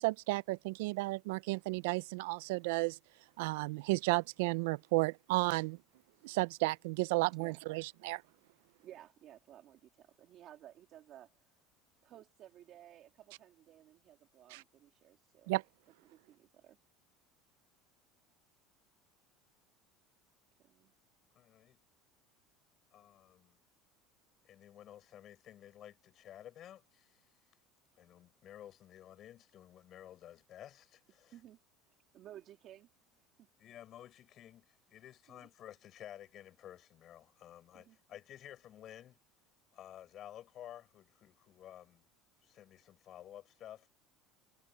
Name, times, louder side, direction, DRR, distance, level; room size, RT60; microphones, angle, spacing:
voice 1, 0.0-3.0 3.4-5.8 6.2-8.2 15.5-15.6, right 23 dB, 85° right, 0.4 m, -33 dB
voice 2, 8.8-11.5 12.0-15.5 16.0-16.8 20.6-20.9 31.3-31.6 32.1-32.9 33.1-33.5 35.3-35.5 37.7-38.0, right 12 dB, 40° right, 2.8 m, -56 dB
voice 3, 21.4-21.8 22.9-23.6 24.4-27.3 28.0-31.4 33.6-39.2 39.7-42.1 42.4-43.9, left 11 dB, 35° left, 6.8 m, -53 dB
cardioid pair, 165°, 0 cm